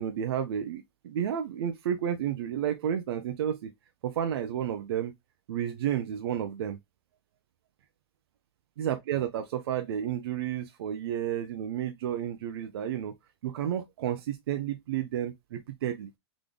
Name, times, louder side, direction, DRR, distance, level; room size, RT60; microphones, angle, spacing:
voice 1, 0.0-3.7 4.0-5.1 5.5-6.8 8.8-13.1 13.4-16.1, right 10 dB, 65° right, 0.7 m, -31 dB
3.9 x 3.7 x 3.3 m
supercardioid pair, 165°, 14 cm